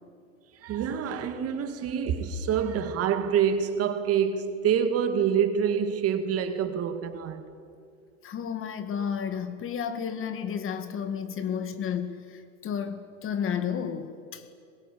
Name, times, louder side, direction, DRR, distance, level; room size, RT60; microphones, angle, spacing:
voice 1, 0.6-7.5, right 8 dB, 40° right, 2.1 m, -26 dB
voice 2, 8.2-14.4, left 7 dB, 35° left, 1.9 m, -32 dB
23.5 x 21.5 x 8.5 m
hypercardioid pair, 110°, 38 cm